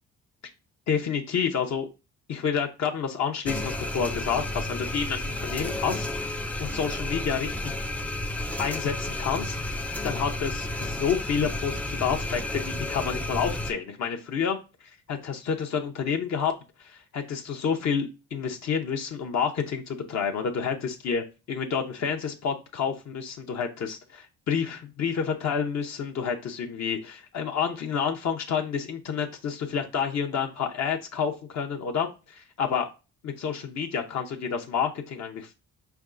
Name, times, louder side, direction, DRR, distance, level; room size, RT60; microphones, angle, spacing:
voice 1, 0.9-1.9 2.3-7.7 8.6-14.6 15.1-16.5 16.8-32.9 33.2-35.5, left 6 dB, 60° left, 3 dB, 0.6 m, -29 dB
sound 1, 3.4-13.7, left 1 dB, 5° left, 0.3 m, -32 dB
4.7 x 3.4 x 2.5 m, 0.30 s
cardioid pair, 90°, 30 cm